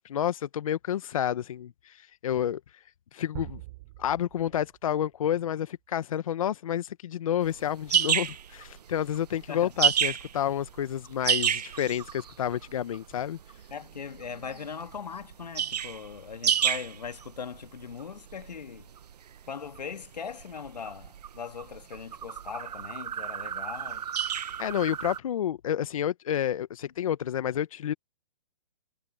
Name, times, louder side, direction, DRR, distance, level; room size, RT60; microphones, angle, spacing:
voice 1, 0.0-2.6 3.1-3.6 4.0-13.4 24.6-27.9, left 10 dB, 55° left, 0.9 m, -30 dB
sound 1, 3.3-5.3, right 19 dB, 35° right, 5.0 m, -44 dB
sound 2, 7.4-25.2, right 9 dB, 75° right, 0.7 m, -31 dB
voice 2, 13.7-18.9 19.5-24.1 26.8-26.9, left 6 dB, 90° left, 1.7 m, -40 dB
hypercardioid pair, 155°, 21 cm